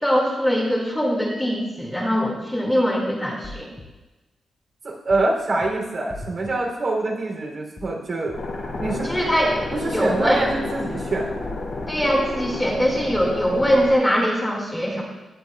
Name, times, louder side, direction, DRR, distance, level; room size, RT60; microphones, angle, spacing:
voice 1, 0.0-3.7 9.0-9.7 9.9-10.5 11.9-15.0, equal, 10° left, -2 dB, 2.1 m, -22 dB
sound 1, 3.4-3.9 5.1-5.3 5.6-5.7 6.1-6.5 7.8-8.0 8.3-8.4 8.8-9.2 10.4-10.6 10.9-11.0 11.4-11.9 13.1-13.3 13.6-13.7, left 2 dB, 35° left, 1.8 m, -40 dB
voice 2, 4.8-8.4 8.8-9.1 9.7-11.3, right 2 dB, 55° right, -2 dB, 3.1 m, -25 dB
sound 2, 8.3-14.0, left 2 dB, 60° left, 2.7 m, -31 dB
18.0 x 7.9 x 2.4 m, 1.1 s
cardioid pair, 95°, 0 cm